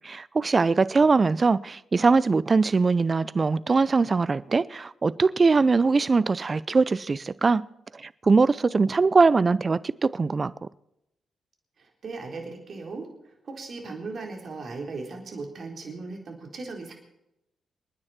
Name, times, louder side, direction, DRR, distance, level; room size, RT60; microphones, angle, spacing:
voice 1, 0.0-7.6 7.9-10.5, right 4 dB, 40° right, 0.6 m, -22 dB
voice 2, 11.8-16.9, right 3 dB, 55° right, 4.0 m, -38 dB
28.5 x 9.9 x 4.4 m
hypercardioid pair, 40°, 0 cm